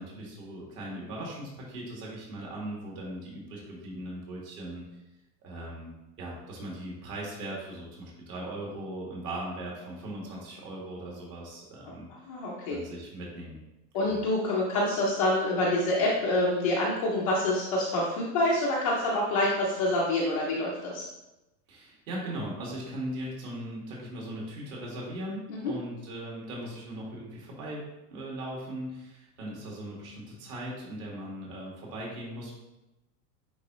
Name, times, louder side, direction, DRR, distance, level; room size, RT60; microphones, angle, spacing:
voice 1, 0.0-4.8 5.4-12.1 12.7-13.6 14.0-14.2 21.7-27.8 28.1-32.5, right 1 dB, 55° right, -3 dB, 2.0 m, -39 dB
voice 2, 12.3-12.8 13.9-21.0 25.5-25.7, left 1 dB, 25° left, -5 dB, 0.3 m, -27 dB
9.6 x 3.7 x 3.0 m, 0.97 s
supercardioid pair, 165°, 49 cm